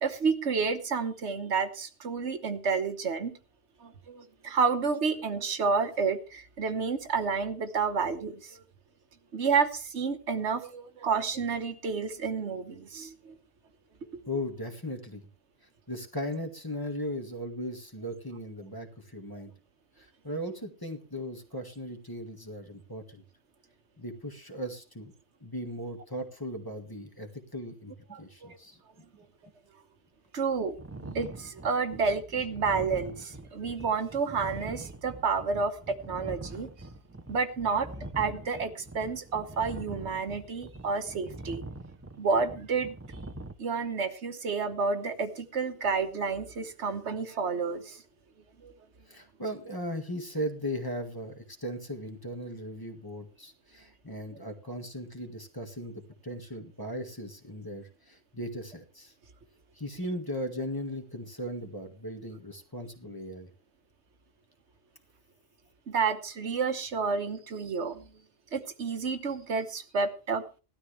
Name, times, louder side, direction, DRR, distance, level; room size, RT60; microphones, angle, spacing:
voice 1, 0.0-3.3 3.8-8.6 9.3-13.3 28.1-28.6 30.3-36.7 37.3-37.9 38.1-41.6 42.2-42.9 43.6-48.0 48.6-48.7 65.9-68.0 68.5-70.4, right 5 dB, 75° right, 8 dB, 1.4 m, -30 dB
voice 2, 14.3-15.3 15.9-19.5 20.0-23.2 24.0-25.1 25.4-29.3 49.1-59.1 59.7-63.5, equal, 20° left, 4 dB, 1.8 m, -38 dB
sound 1, 30.8-43.5, right 2 dB, 15° right, 0.6 m, -43 dB
17.5 x 12.5 x 3.3 m, 0.32 s
omnidirectional pair, 1.2 m